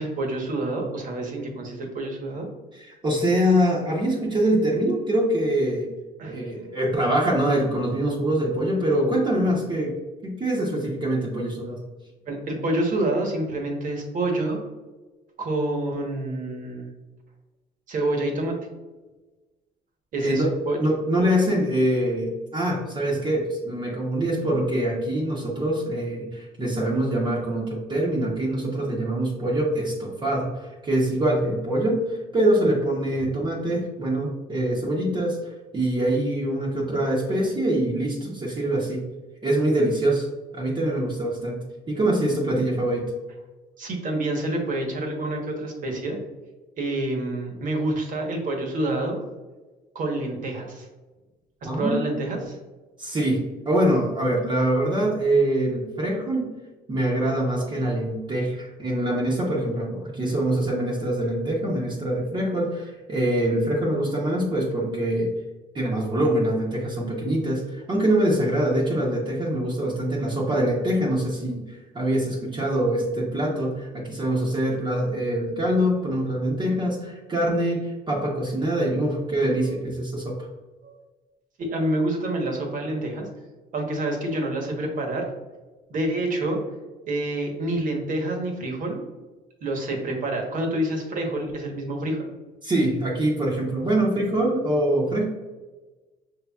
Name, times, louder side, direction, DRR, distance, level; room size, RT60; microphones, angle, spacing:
voice 1, 0.0-2.5 6.2-6.4 12.2-14.6 15.4-16.9 17.9-18.6 20.1-20.8 43.8-46.2 46.8-49.2 49.9-50.9 51.6-52.6 79.6-79.7 80.8-81.0 81.6-83.3 83.7-85.2 85.9-86.6 87.1-89.0 89.6-92.2, right 1 dB, 50° right, 2 dB, 1.1 m, -27 dB
voice 2, 2.7-5.9 6.2-9.9 10.2-11.8 20.2-20.5 20.8-39.0 39.4-40.3 40.5-43.1 51.6-52.1 53.0-56.5 56.9-65.3 65.7-80.5 92.6-95.2, right 1 dB, 30° right, -4 dB, 0.9 m, -24 dB
5.6 x 3.2 x 2.3 m, 1.2 s
cardioid pair, 110°, 17 cm